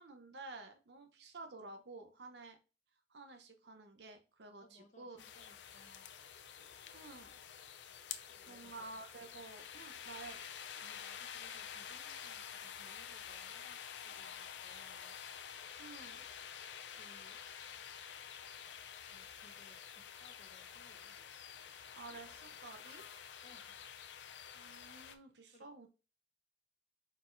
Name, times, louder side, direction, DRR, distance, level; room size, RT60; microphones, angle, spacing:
voice 1, 0.0-2.6 3.1-5.2 6.9-7.3 8.5-10.4 15.8-16.2 21.9-23.0 24.5-25.9, right 3 dB, 75° right, 6 dB, 0.8 m, -51 dB
voice 2, 4.6-6.1 8.3-8.9 10.8-15.2 16.9-17.4 19.1-21.2 23.4-23.8 25.5-25.7, left 1 dB, 45° left, 3 dB, 1.0 m, -64 dB
sound 1, 5.2-25.2, left 8 dB, 90° left, 0.5 m, -49 dB
4.3 x 4.0 x 2.6 m, 0.32 s
head